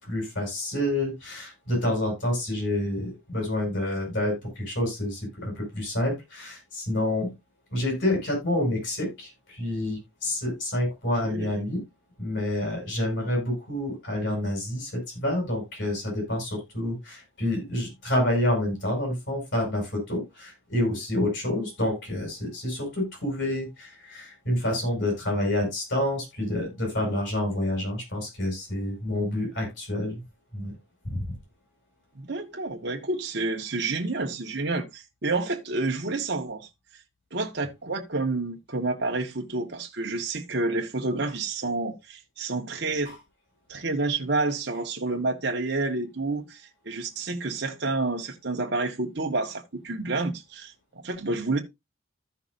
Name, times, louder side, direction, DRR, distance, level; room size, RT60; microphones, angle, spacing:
voice 1, 0.0-7.3 7.7-11.8 12.2-30.2 30.5-30.7 31.0-31.2 43.1-43.2, left 1 dB, 60° left, 7.4 m, -28 dB
voice 2, 32.2-36.7 37.3-43.1 43.7-50.7 51.0-51.6, right 3 dB, 55° right, 1.3 m, -29 dB
14.5 x 5.9 x 2.6 m
head